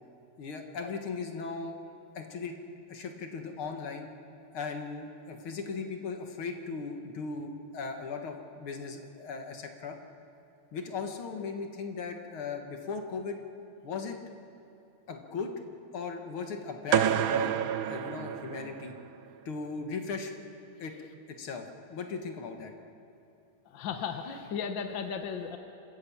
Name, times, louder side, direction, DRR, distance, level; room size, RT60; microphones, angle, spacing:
voice 1, 0.4-1.8 2.2-2.6 2.9-4.1 4.5-10.0 10.7-13.4 13.8-14.2 15.1-15.5 15.9-17.6 17.9-19.0 19.5-20.3 20.8-20.9 21.3-22.7, left 4 dB, 85° left, 4 dB, 2.4 m, -37 dB
sound 1, 16.9-19.0, right 10 dB, 75° right, 1.6 m, -28 dB
voice 2, 23.7-25.6, left 6 dB, 65° left, 6 dB, 1.8 m, -35 dB
27.0 x 13.5 x 8.6 m, 2.7 s
omnidirectional pair, 2.3 m